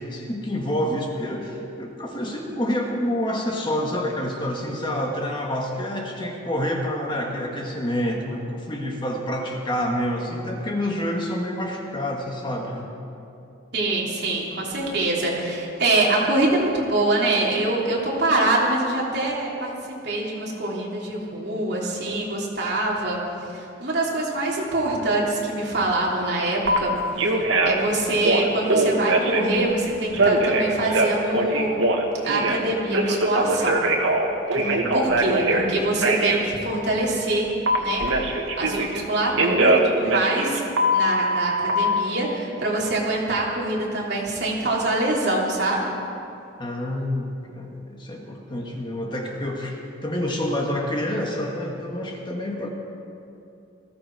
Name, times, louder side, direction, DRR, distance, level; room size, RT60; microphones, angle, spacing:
voice 1, 0.0-12.9 34.5-35.1 46.6-52.7, left 1 dB, 25° left, 0 dB, 1.4 m, -28 dB
voice 2, 13.7-19.7 20.0-26.9 27.2-27.4 27.6-31.8 32.2-33.8 34.5-37.5 37.7-38.1 38.6-40.6 40.9-45.9, right 2 dB, 55° right, -4 dB, 3.1 m, -24 dB
Telephone, 26.6-26.8 27.2-27.8 28.2-29.6 30.1-32.6 32.9-35.6 36.0-36.4 37.7-39.0 39.4-41.7, right 2 dB, 80° right, 1.6 m, -21 dB
19.5 x 15.0 x 4.7 m, 2.7 s
head